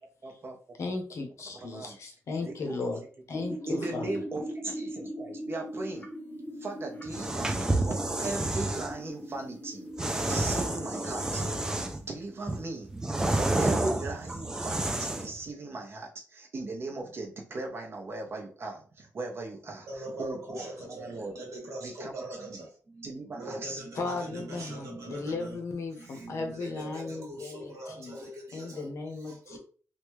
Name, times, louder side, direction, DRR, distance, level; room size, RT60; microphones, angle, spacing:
voice 1, 0.2-0.6 1.5-2.0 2.4-2.8 3.7-6.1 6.6-11.4 12.0-12.9 13.3-21.4 21.8-22.7 23.0-23.8 24.3-24.8, right 2 dB, 45° right, 0.7 m, -38 dB
voice 2, 0.8-3.0 3.3-4.1 24.0-28.2 28.5-29.6, left 3 dB, 65° left, 0.7 m, -36 dB
sound 1, 3.3-11.8, equal, 30° left, 0.7 m, -40 dB
sound 2, 7.0-8.9 10.0-12.1 12.5-15.4, right 2 dB, 10° right, 0.3 m, -29 dB
voice 3, 19.9-25.6 26.0-28.9 29.2-29.6, right 1 dB, 75° right, 1.4 m, -42 dB
3.3 x 2.2 x 3.0 m
wide cardioid pair, 165°, 5 cm